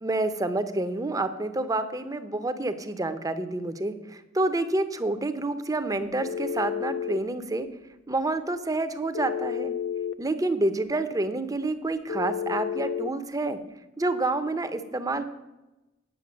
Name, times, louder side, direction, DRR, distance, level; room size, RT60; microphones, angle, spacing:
voice 1, 0.0-7.7 8.1-9.7 10.2-13.6 14.0-15.2, right 2 dB, 20° right, 10 dB, 0.7 m, -28 dB
Telephone, 6.2-7.2 9.1-10.2 12.1-13.1, left 8 dB, 65° left, 0.5 m, -31 dB
9.3 x 6.6 x 7.3 m, 1.0 s
head